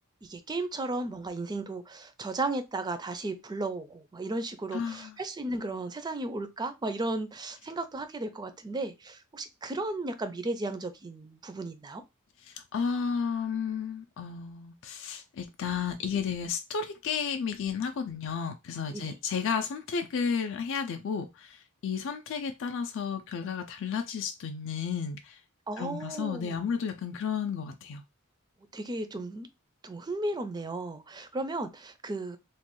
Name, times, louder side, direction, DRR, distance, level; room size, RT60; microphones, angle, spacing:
voice 1, 0.2-12.0 18.9-19.2 25.7-26.6 28.7-29.5 29.8-32.4, right 2 dB, 20° right, 0.4 m, -35 dB
voice 2, 4.7-5.2 12.4-25.4 25.8-28.0, left 6 dB, 60° left, 0.4 m, -32 dB
3.1 x 2.2 x 3.0 m
head